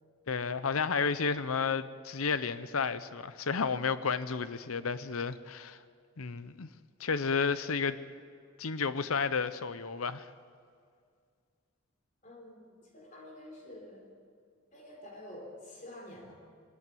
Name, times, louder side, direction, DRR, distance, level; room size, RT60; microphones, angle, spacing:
voice 1, 0.3-5.8 6.2-6.7 7.0-8.0 8.6-10.3, left 5 dB, 90° left, 0.8 m, -32 dB
voice 2, 12.2-14.1 14.7-16.3, left 1 dB, 35° left, 3.9 m, -48 dB
22.5 x 13.5 x 9.3 m
head